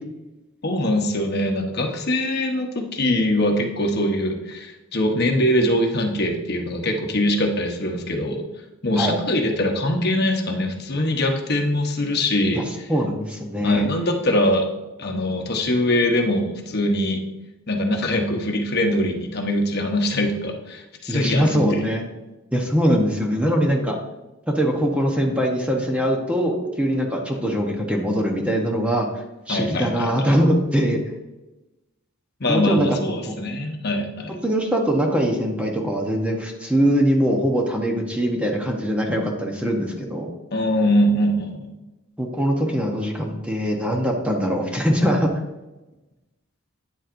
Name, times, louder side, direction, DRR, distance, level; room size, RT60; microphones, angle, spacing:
voice 1, 0.6-8.5 8.8-12.9 13.6-14.7 15.0-17.2 17.7-21.8 29.5-30.3 32.4-34.4 40.5-41.7, left 1 dB, 50° left, 3 dB, 1.0 m, -22 dB
voice 2, 12.9-13.9 21.1-22.0 22.5-24.0 24.5-29.1 29.5-31.0 32.5-33.3 34.3-40.3 42.2-45.3, equal, 5° right, 1 dB, 0.9 m, -22 dB
9.2 x 7.2 x 2.5 m, 1.0 s
head